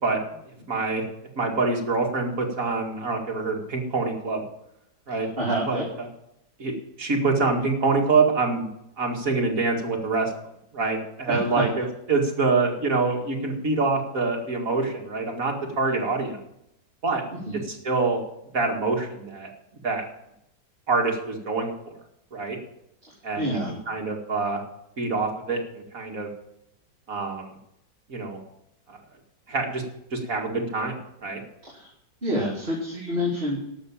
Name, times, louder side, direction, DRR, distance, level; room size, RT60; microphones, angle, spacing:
voice 1, 0.7-1.0 1.4-4.5 5.1-5.3 5.7-5.8 6.6-6.7 7.0-8.7 9.0-10.3 10.7-16.4 17.0-17.2 17.7-18.2 18.5-19.5 19.8-20.0 20.9-21.9 22.3-22.6 23.2-23.6 23.9-24.6 25.0-26.3 27.1-27.5 28.1-28.4 28.9-29.0 29.5-29.8 30.1-31.4, right 3 dB, 45° right, 1 dB, 2.5 m, -25 dB
voice 2, 5.1-5.8 11.3-11.6 17.3-17.6 23.4-23.7 31.6-31.9 32.2-33.6, equal, 30° right, -4 dB, 3.0 m, -28 dB
12.0 x 6.6 x 8.5 m, 0.81 s
omnidirectional pair, 2.1 m